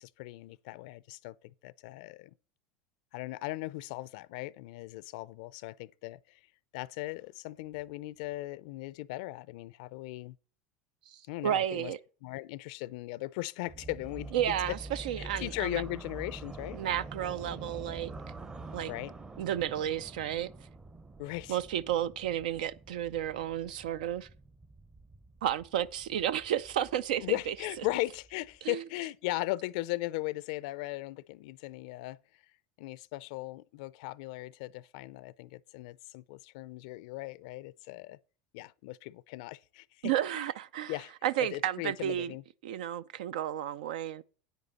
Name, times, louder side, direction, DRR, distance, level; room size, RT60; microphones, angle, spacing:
voice 1, 0.0-1.4 1.6-2.3 3.1-6.4 6.7-10.4 11.3-11.9 12.2-14.6 15.2-16.8 18.9-19.1 21.2-21.6 27.2-32.2 32.8-38.2 38.5-40.5 40.9-41.1 41.4-42.4, left 19 dB, 70° left, 0.4 m, -38 dB
voice 2, 11.1-12.0 14.3-15.8 16.7-18.1 18.7-18.9 19.4-20.5 21.5-24.3 25.4-27.5 28.6-28.8 40.0-40.9 41.2-42.3 42.6-44.2, right 11 dB, 85° right, 0.4 m, -32 dB
sound 1, 13.7-28.6, right 2 dB, 20° right, 0.7 m, -46 dB
9.1 x 8.2 x 4.1 m
supercardioid pair, 120°, 4 cm